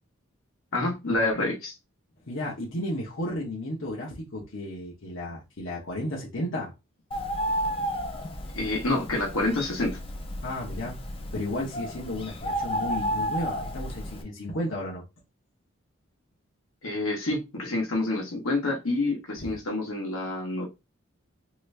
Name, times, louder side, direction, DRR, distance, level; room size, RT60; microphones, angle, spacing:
voice 1, 0.7-1.7 8.5-10.0 16.8-20.7, left 2 dB, 80° left, 1.3 m, -28 dB
voice 2, 2.3-6.7 10.4-11.0 11.3-15.0 19.4-19.5, left 1 dB, 65° left, 1.0 m, -33 dB
Bird, 7.1-14.2, equal, 25° left, 0.5 m, -32 dB
3.0 x 2.6 x 3.3 m
head